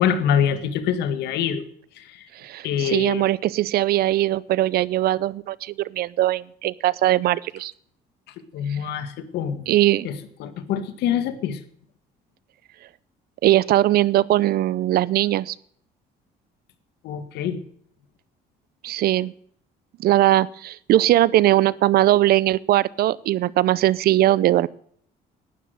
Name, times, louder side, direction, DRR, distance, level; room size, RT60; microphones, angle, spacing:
voice 1, 0.0-1.6 1.9-2.3 2.6-3.2 8.3-9.7 10.0-11.6 17.0-17.6, left 8 dB, 80° left, 11 dB, 1.8 m, -25 dB
voice 2, 2.3-7.7 8.7-8.8 9.7-10.1 13.4-15.6 18.8-19.3 20.0-24.7, right 14 dB, 65° right, 22 dB, 0.6 m, -20 dB
12.0 x 10.0 x 7.8 m, 0.63 s
cardioid pair, 110°, 17 cm